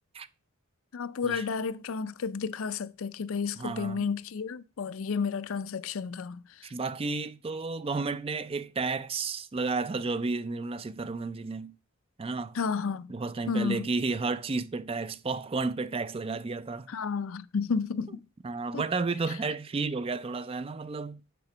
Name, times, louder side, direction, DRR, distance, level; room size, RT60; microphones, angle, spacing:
voice 1, 0.9-6.4 12.5-13.1 13.5-13.9 16.9-18.2 18.7-18.8, left 5 dB, 75° left, 0.5 m, -31 dB
voice 2, 3.6-4.1 6.6-11.7 12.2-12.6 13.1-16.9 18.4-21.2, right 4 dB, 25° right, 0.4 m, -32 dB
6.9 x 6.0 x 5.9 m
head